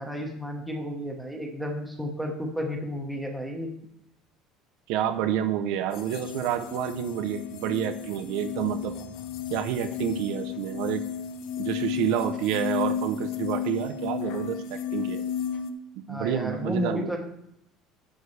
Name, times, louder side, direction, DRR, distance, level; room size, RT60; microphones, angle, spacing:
voice 1, 0.0-3.7 16.1-17.2, equal, ahead, 1 dB, 1.2 m, -32 dB
voice 2, 4.9-9.0 9.5-11.0 11.6-15.2 16.1-17.2, right 10 dB, 65° right, 8 dB, 0.7 m, -29 dB
sound 1, 5.9-15.7, left 8 dB, 55° left, 0.7 m, -33 dB
11.5 x 6.6 x 3.3 m, 0.79 s
cardioid pair, 170°, 0 cm